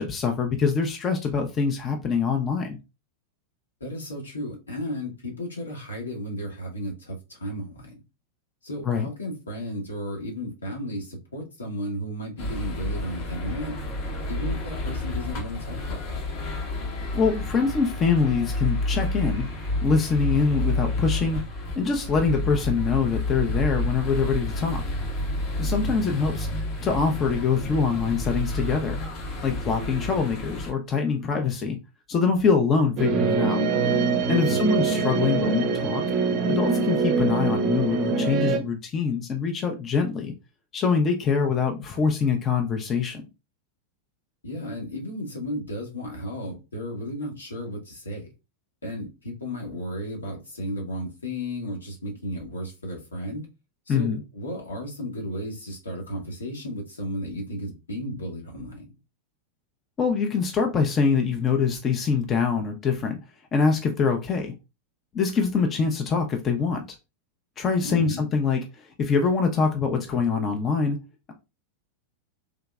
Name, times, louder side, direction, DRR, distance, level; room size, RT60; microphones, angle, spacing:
voice 1, 0.0-2.8 8.8-9.1 17.1-21.4 21.8-24.8 25.6-29.0 29.4-31.8 32.1-33.6 34.3-36.0 36.5-40.3 40.7-43.2 53.9-54.2 60.0-63.2 63.5-64.5 65.1-66.8 67.6-71.0, left 5 dB, 25° left, 0.6 m, -24 dB
voice 2, 3.8-7.9 8.6-13.8 14.3-16.2 25.8-26.0 34.4-34.9 44.4-48.3 48.8-53.5 53.9-58.9 67.8-68.3, equal, 75° left, 1.2 m, -34 dB
sound 1, 12.4-30.7, left 1 dB, 40° left, 0.9 m, -30 dB
sound 2, 33.0-38.6, right 4 dB, 40° right, 0.6 m, -24 dB
3.5 x 2.9 x 2.3 m
figure-of-eight pair, 90°, 0 cm